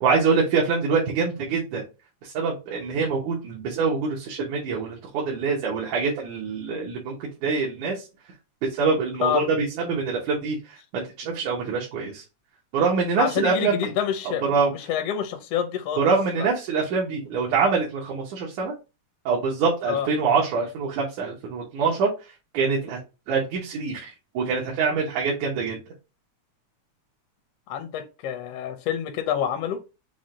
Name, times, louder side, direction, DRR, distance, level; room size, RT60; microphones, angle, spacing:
voice 1, 0.0-1.8 2.2-7.2 7.4-8.1 8.6-12.2 12.7-13.9 14.5-14.7 16.0-18.7 19.3-22.1 22.5-23.0 23.3-25.8, right 5 dB, 85° right, 2.4 m, -25 dB
voice 2, 13.2-14.5 14.7-16.1 16.4-16.5 19.9-20.1 27.7-29.8, left 9 dB, 80° left, 1.3 m, -27 dB
6.2 x 2.1 x 3.7 m
omnidirectional pair, 3.4 m